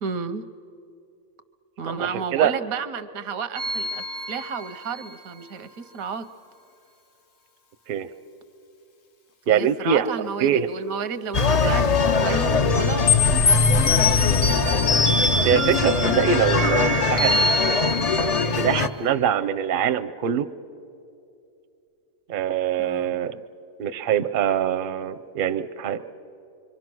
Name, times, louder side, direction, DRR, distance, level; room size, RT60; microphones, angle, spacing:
voice 1, 0.0-0.4 1.8-6.2 9.5-13.1 22.8-23.2, right 6 dB, 80° right, 11 dB, 1.3 m, -32 dB
voice 2, 2.0-2.5 7.9-8.1 9.5-10.1 10.4-10.7 11.6-11.7 15.4-17.8 18.2-20.5 22.3-23.4 23.8-26.0, right 8 dB, 50° right, 10 dB, 0.6 m, -23 dB
sound 1, 3.5-5.1 13.1-18.8, left 3 dB, 65° left, 1.6 m, -24 dB
sound 2, 11.3-18.9, left 4 dB, 45° left, 0.5 m, -22 dB
25.5 x 24.5 x 6.1 m, 2.6 s
omnidirectional pair, 1.5 m